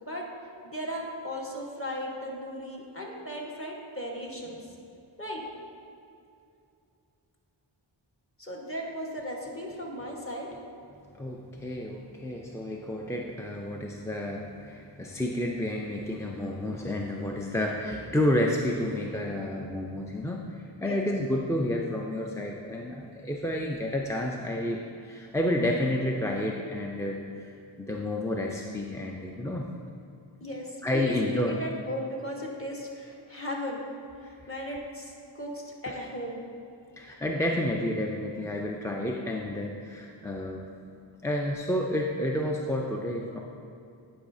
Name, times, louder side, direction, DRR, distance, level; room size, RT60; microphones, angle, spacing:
voice 1, 0.6-4.7 5.2-5.4 8.4-10.5 20.8-21.1 30.4-33.8 34.2-36.4, equal, 30° left, -2 dB, 1.3 m, -36 dB
voice 2, 11.1-29.7 30.8-31.5 35.9-36.0 37.0-40.7 41.2-43.4, left 1 dB, 5° left, -1 dB, 0.4 m, -30 dB
10.0 x 4.8 x 2.6 m, 2.6 s
cardioid pair, 45°, 46 cm